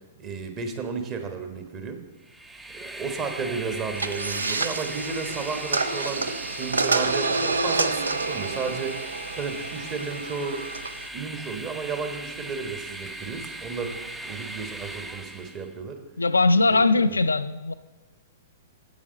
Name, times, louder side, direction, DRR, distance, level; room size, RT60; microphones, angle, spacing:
voice 1, 0.2-2.0 2.7-10.6 11.1-16.0 16.7-17.1, right 5 dB, 30° right, 6 dB, 1.3 m, -33 dB
Train, 2.2-15.7, right 1 dB, 5° right, 0.5 m, -39 dB
sound 1, 4.0-11.1, right 3 dB, 75° right, 0.5 m, -28 dB
voice 2, 16.2-17.7, left 3 dB, 80° left, 11 dB, 0.4 m, -20 dB
8.9 x 7.6 x 5.4 m, 1.2 s
figure-of-eight pair, 110°, 0 cm